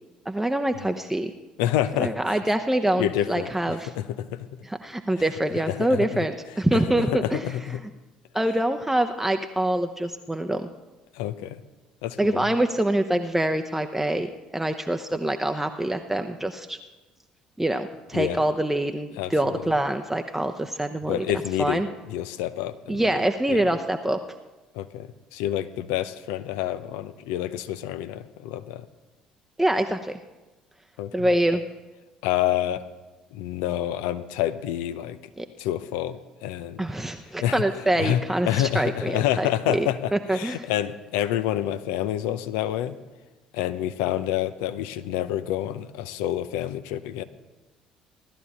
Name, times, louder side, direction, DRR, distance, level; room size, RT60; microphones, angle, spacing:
voice 1, 0.3-1.3 2.0-3.9 4.6-7.5 8.3-10.7 12.2-16.8 17.6-21.3 21.6-21.9 22.9-24.2 29.6-30.2 31.1-31.6 35.4-35.5 36.8-40.7, right 1 dB, 5° right, 6 dB, 0.8 m, -25 dB
voice 2, 1.6-2.1 3.0-4.5 5.6-6.1 6.7-7.8 11.1-11.6 12.0-12.4 18.1-18.4 19.2-19.3 21.1-21.8 22.1-23.0 23.5-23.6 24.7-28.8 31.0-31.1 32.2-32.8 33.3-35.2 35.6-36.8 37.4-37.6 38.0-43.0 43.5-47.2, left 12 dB, 65° left, 13 dB, 0.7 m, -28 dB
17.5 x 12.0 x 4.2 m, 1.1 s
figure-of-eight pair, 55°, 3 cm